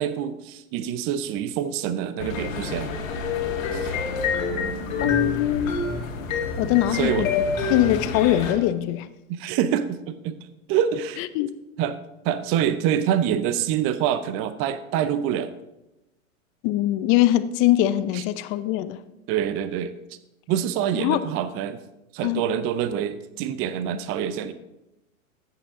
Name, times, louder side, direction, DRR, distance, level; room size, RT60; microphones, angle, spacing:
voice 1, 0.0-2.9 3.7-3.9 6.7-7.3 9.3-10.4 10.7-11.2 11.8-12.0 12.2-15.5 18.1-18.2 19.3-19.9 20.5-21.8 22.1-24.5, right 9 dB, 30° right, 0.7 m, -26 dB
sound 1, 2.2-8.5, left 4 dB, 65° left, 1.8 m, -27 dB
voice 2, 5.0-5.9 6.6-7.4 7.7-9.1 11.3-11.5 16.6-19.0 21.0-21.3 22.2-22.4, left 14 dB, 30° left, 0.6 m, -22 dB
13.0 x 8.4 x 3.7 m
hypercardioid pair, 115°, 42 cm